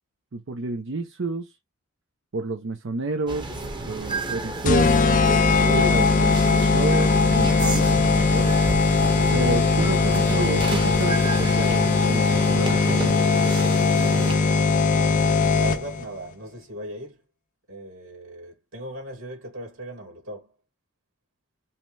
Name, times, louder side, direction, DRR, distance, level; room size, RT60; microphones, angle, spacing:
voice 1, 0.3-1.5 2.3-3.5 3.9-4.9 5.7-8.5 9.3-13.1, right 3 dB, 55° right, 0.6 m, -30 dB
sound 1, 3.3-14.4, right 2 dB, 20° right, 1.0 m, -32 dB
sound 2, 4.6-16.0, left 4 dB, 35° left, 0.4 m, -20 dB
voice 2, 14.2-14.8 15.6-17.2 17.7-20.5, right 1 dB, 75° right, 2.7 m, -38 dB
5.6 x 2.2 x 3.2 m
head